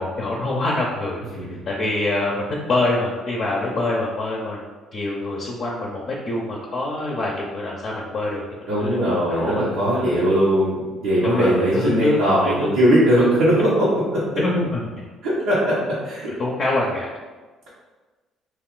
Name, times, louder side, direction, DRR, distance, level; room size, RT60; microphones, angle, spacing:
voice 1, 0.0-4.6 4.9-8.4 8.8-9.6 9.9-10.2 11.2-12.2 12.4-12.7 13.1-13.2 14.4-15.1 16.4-17.1, left 2 dB, 50° left, -3 dB, 0.6 m, -25 dB
voice 2, 8.7-14.2 15.2-16.3, equal, 85° right, -12 dB, 1.0 m, -20 dB
2.5 x 2.4 x 3.7 m, 1.3 s
supercardioid pair, 65°, 0 cm